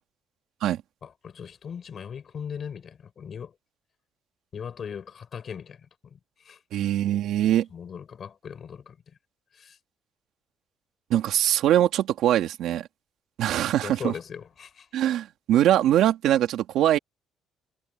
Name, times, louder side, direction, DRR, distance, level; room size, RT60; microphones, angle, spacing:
voice 1, 1.0-3.5 4.5-6.6 7.7-9.0 9.5-9.8 13.8-15.0, left 7 dB, 35° left, 4.7 m, -39 dB
voice 2, 6.7-7.7 11.1-12.9 13.4-14.1 14.9-17.0, right 12 dB, 70° right, 2.6 m, -22 dB
cardioid pair, 175°, 0 cm